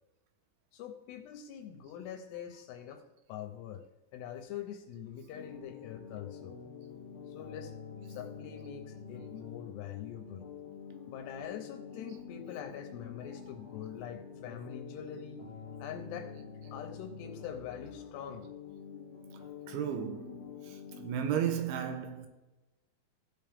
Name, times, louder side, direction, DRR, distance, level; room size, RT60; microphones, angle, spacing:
voice 1, 0.7-3.0 3.3-3.9 4.1-6.5 7.3-7.7 8.1-10.5 11.1-15.5 15.8-16.3 16.7-18.5, left 9 dB, 80° left, 2.7 m, -44 dB
sound 1, 5.3-21.4, left 7 dB, 50° left, 2.1 m, -47 dB
voice 2, 19.7-20.5 21.0-22.3, right 9 dB, 85° right, 3.3 m, -33 dB
15.5 x 5.7 x 3.5 m
omnidirectional pair, 5.3 m